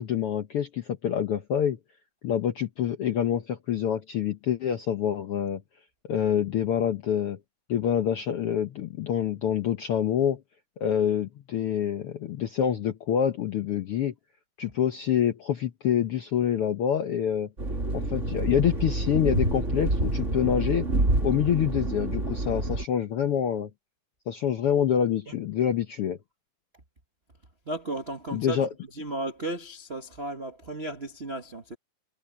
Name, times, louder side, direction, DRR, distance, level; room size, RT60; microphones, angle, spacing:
voice 1, 0.0-1.8 2.2-5.6 6.1-7.4 7.7-10.4 10.8-14.1 14.6-17.5 17.9-20.9 21.2-23.7 24.3-26.2 28.3-28.7, left 9 dB, 70° left, 1.3 m, -26 dB
sound 1, 17.6-22.8, right 2 dB, 20° right, 3.1 m, -27 dB
voice 2, 27.7-28.6 29.0-31.7, right 2 dB, 55° right, 0.6 m, -34 dB
omnidirectional pair, 3.8 m